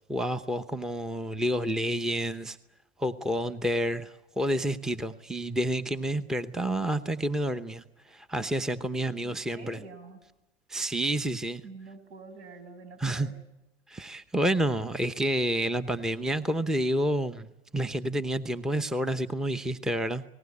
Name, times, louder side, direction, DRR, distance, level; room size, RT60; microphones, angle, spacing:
voice 1, 0.1-2.6 3.0-9.8 10.7-11.6 13.0-13.3 13.9-20.2, right 1 dB, ahead, 0.8 m, -29 dB
voice 2, 9.2-10.2 11.6-13.3, right 4 dB, 75° right, 6.9 m, -47 dB
29.5 x 19.5 x 8.5 m
hypercardioid pair, 115°, 32 cm